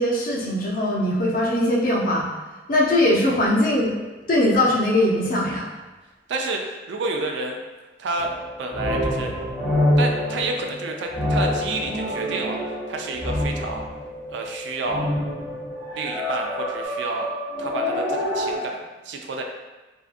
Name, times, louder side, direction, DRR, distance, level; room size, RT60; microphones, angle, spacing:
voice 1, 0.0-2.3 2.7-3.9 4.3-5.7, left 1 dB, 50° left, -3 dB, 0.5 m, -20 dB
voice 2, 6.3-7.6 8.0-9.3 10.0-13.9 14.3-15.1 15.9-17.3 17.6-19.4, right 3 dB, 75° right, 2 dB, 0.4 m, -30 dB
sound 1, 8.1-16.8, left 1 dB, 85° left, 0.8 m, -38 dB
sound 2, 8.2-14.1 14.8-18.6, left 1 dB, 5° left, 0.7 m, -26 dB
2.6 x 2.3 x 2.4 m, 1.2 s
head